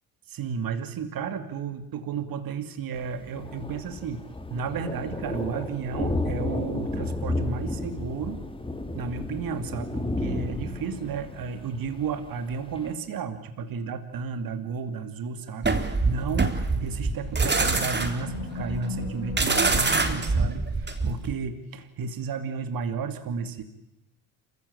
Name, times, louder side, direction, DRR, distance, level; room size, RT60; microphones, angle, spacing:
voice 1, 0.3-8.4 8.9-23.6, right 5 dB, 50° right, 9 dB, 2.8 m, -33 dB
Thunder, 3.0-12.9, left 2 dB, 10° left, 2.9 m, -33 dB
sound 1, 15.6-21.3, right 3 dB, 25° right, 3.7 m, -25 dB
Animal, 16.9-21.3, left 5 dB, 80° left, 2.7 m, -38 dB
27.0 x 16.0 x 8.7 m, 0.93 s
hypercardioid pair, 60°, 43 cm